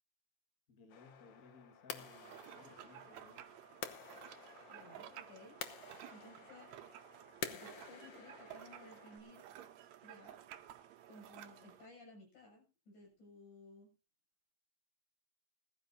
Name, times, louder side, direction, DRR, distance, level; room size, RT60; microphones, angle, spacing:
voice 1, 0.7-3.4, left 4 dB, 35° left, 4 dB, 1.7 m, -60 dB
sound 1, 0.9-9.2, left 8 dB, 60° left, 1.8 m, -50 dB
sound 2, 2.0-11.9, right 11 dB, 75° right, 2.1 m, -54 dB
voice 2, 4.7-5.6 6.1-6.7 7.5-9.5 10.0-10.4 11.1-13.9, left 2 dB, 80° left, 0 dB, 8.7 m, -58 dB
20.5 x 12.5 x 2.7 m, 0.30 s
omnidirectional pair, 3.5 m